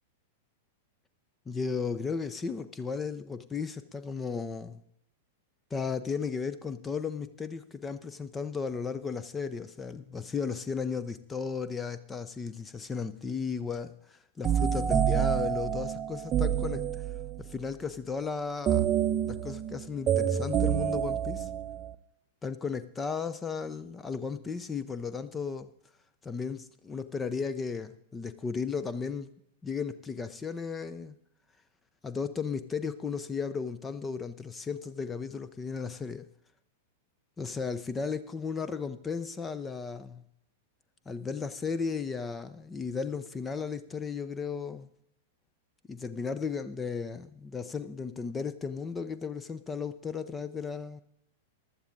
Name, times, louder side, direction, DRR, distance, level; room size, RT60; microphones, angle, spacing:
voice 1, 1.5-4.8 5.7-17.0 17.4-18.9 19.3-21.5 22.4-25.7 26.2-29.3 29.6-31.2 32.0-36.3 37.4-40.2 41.1-44.9 45.9-51.0, left 5 dB, 15° left, 14 dB, 0.6 m, -35 dB
sound 1, 14.4-17.4 18.7-21.9, right 9 dB, 25° right, 0.8 m, -28 dB
15.0 x 11.5 x 3.9 m, 0.72 s
figure-of-eight pair, 95°, 0 cm